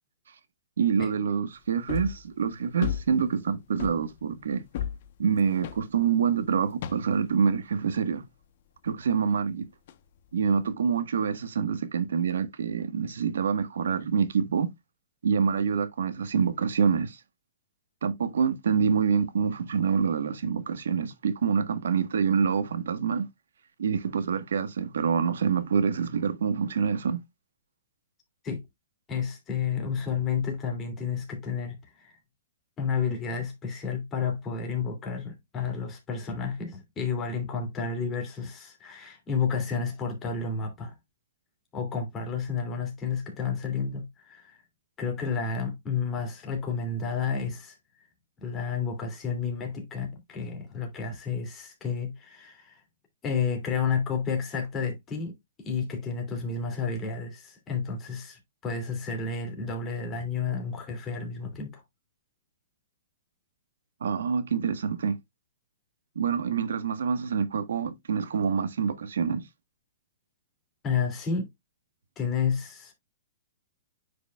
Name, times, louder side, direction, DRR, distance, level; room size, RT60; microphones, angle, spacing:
voice 1, 0.8-4.6 5.2-8.2 8.8-9.7 10.3-14.7 15.2-17.2 18.0-23.3 23.8-27.2 64.0-65.2 66.1-69.4, right 6 dB, 85° right, 1.3 m, -26 dB
sound 1, 1.9-2.3 2.8-3.5 3.8-6.3 6.8-7.3 9.9-10.0, left 10 dB, 55° left, 0.9 m, -34 dB
voice 2, 29.1-32.2 32.8-40.9 41.7-44.6 45.0-48.1 48.4-52.8 53.2-55.3 55.6-61.8 70.8-71.5 72.2-72.9, left 5 dB, 20° left, 2.7 m, -31 dB
9.6 x 5.1 x 2.3 m
hypercardioid pair, 150°, 0 cm